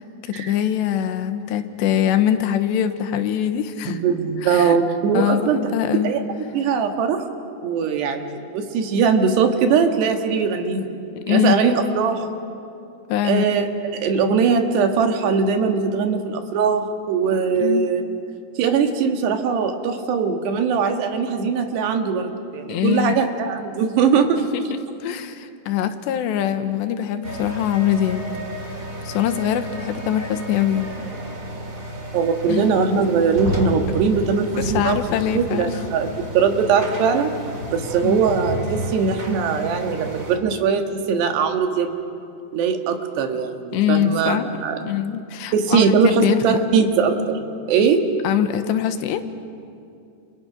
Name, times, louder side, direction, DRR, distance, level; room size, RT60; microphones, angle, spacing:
voice 1, 0.0-4.0 4.4-4.8 5.1-6.1 11.3-11.5 13.1-13.4 17.6-17.9 22.7-23.1 24.4-24.6 25.0-28.2 29.0-30.9 32.5-32.7 34.6-35.8 38.0-38.2 43.7-44.6 44.9-46.4 48.2-49.2, left 10 dB, 85° left, 9 dB, 3.3 m, -23 dB
voice 2, 3.9-5.6 6.0-7.3 7.6-10.9 11.3-12.2 13.2-18.0 18.6-24.4 32.1-35.0 35.3-37.3 37.7-41.9 42.5-44.8 45.5-48.0, right 6 dB, 75° right, 5 dB, 3.7 m, -21 dB
sound 1, 27.2-40.4, equal, 25° right, 1.9 m, -32 dB
29.5 x 29.5 x 6.1 m, 2.5 s
omnidirectional pair, 5.0 m